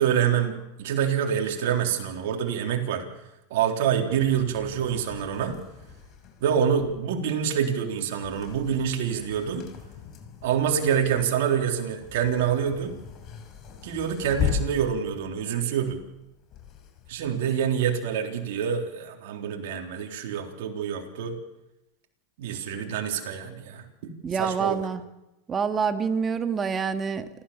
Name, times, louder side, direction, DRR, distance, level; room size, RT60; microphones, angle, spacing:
voice 1, 0.0-3.0 3.5-5.6 6.4-9.7 10.4-13.0 13.8-16.0 17.1-21.4 22.4-23.8 24.4-24.8, right 8 dB, 70° right, 2 dB, 3.8 m, -26 dB
sound 1, 4.1-18.0, left 9 dB, 40° left, 5.8 m, -38 dB
voice 2, 24.2-25.0 25.5-27.3, right 6 dB, 25° right, 8 dB, 1.9 m, -26 dB
28.5 x 14.0 x 7.3 m, 0.93 s
hypercardioid pair, 110°, 0 cm